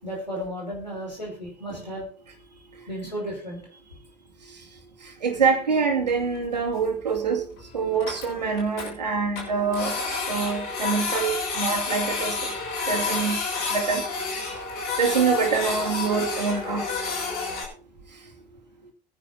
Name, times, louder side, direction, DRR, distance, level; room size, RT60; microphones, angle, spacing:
voice 1, 0.0-2.1 2.9-3.6, equal, 90° left, -2 dB, 5.6 m, -34 dB
voice 2, 5.2-7.4 7.7-12.4 12.9-13.4 13.7-14.0 15.0-16.8, right 5 dB, 80° right, 3 dB, 2.6 m, -25 dB
Printer, 6.1-6.2 6.4-6.5 6.8-6.9 7.2-7.3 7.6-7.7 7.9-8.9 9.4-17.7, left 4 dB, 60° left, 6.5 m, -30 dB
23.0 x 10.0 x 2.7 m, 0.42 s
figure-of-eight pair, 60°, 21 cm